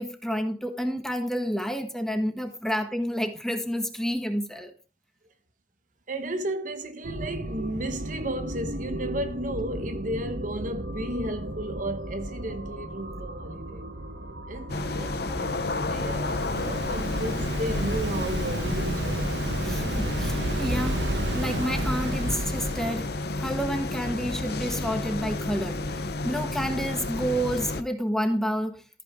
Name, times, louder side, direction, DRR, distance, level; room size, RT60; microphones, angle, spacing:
voice 1, 0.0-4.7 19.6-21.0 21.3-28.8, equal, 5° left, 1.5 m, -29 dB
voice 2, 6.1-13.9 14.5-19.4, right 1 dB, 50° right, 1.2 m, -34 dB
sound 1, 7.0-17.0, right 1 dB, 65° right, 1.7 m, -36 dB
sound 2, 14.7-27.8, left 2 dB, 60° left, 0.9 m, -31 dB
Waves surf, 15.4-23.1, right 1 dB, 90° right, 1.5 m, -31 dB
14.0 x 8.9 x 3.7 m
head